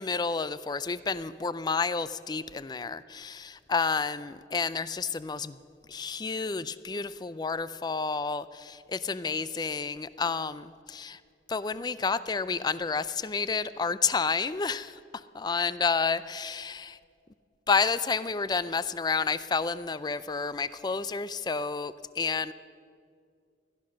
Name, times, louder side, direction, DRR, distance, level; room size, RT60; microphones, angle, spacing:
voice 1, 0.0-5.6 5.9-11.2 11.5-17.0 17.7-22.5, left 5 dB, 25° left, 16 dB, 0.4 m, -30 dB
17.0 x 12.0 x 6.4 m, 2.3 s
head